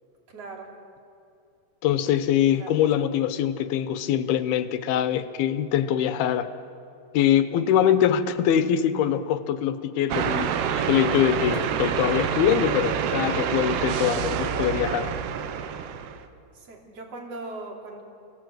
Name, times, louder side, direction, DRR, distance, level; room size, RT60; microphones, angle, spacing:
voice 1, 0.3-0.7 2.6-2.8 11.6-11.8 16.5-18.0, right 2 dB, 40° right, 0 dB, 3.7 m, -39 dB
voice 2, 1.8-6.5 7.1-15.1, left 10 dB, 75° left, 10 dB, 2.7 m, -23 dB
sound 1, 10.1-16.3, right 8 dB, 85° right, 3.1 m, -27 dB
29.0 x 18.0 x 7.9 m, 2.5 s
omnidirectional pair, 4.6 m